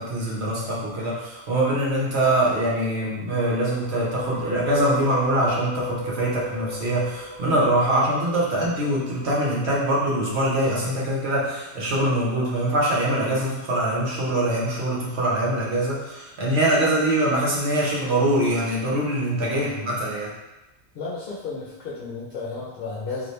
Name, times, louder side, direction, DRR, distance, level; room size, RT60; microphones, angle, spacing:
voice 1, 0.0-20.3, right 1 dB, 70° right, -5 dB, 1.1 m, -23 dB
sound 1, 3.8-11.0, left 1 dB, 50° right, 0.4 m, -36 dB
voice 2, 19.4-20.0 20.9-23.3, left 4 dB, 60° left, -7 dB, 0.8 m, -33 dB
2.7 x 2.6 x 3.2 m, 1.0 s
omnidirectional pair, 1.2 m